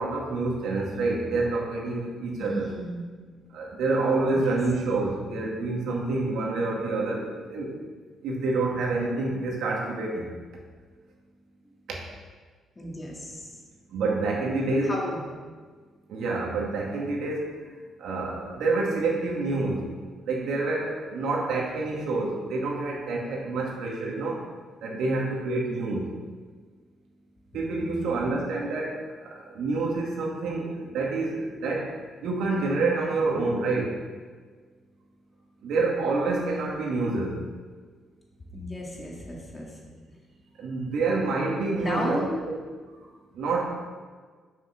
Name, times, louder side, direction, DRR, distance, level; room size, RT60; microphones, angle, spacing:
voice 1, 0.0-2.7 3.5-7.7 8.2-10.3 13.9-14.9 16.1-17.5 18.0-19.8 20.3-24.4 24.8-26.0 27.5-29.0 29.3-31.9 32.2-33.9 35.6-37.4 40.6-42.6 43.3-43.6, right 3 dB, 80° right, -2 dB, 2.2 m, -27 dB
voice 2, 2.4-3.0 4.3-4.5 12.8-13.5 14.8-15.2 27.8-28.5 38.5-39.8 41.8-42.4 43.5-43.6, left 1 dB, 25° left, -2 dB, 2.4 m, -34 dB
7.5 x 6.3 x 5.9 m, 1.5 s
cardioid pair, 90°, 0 cm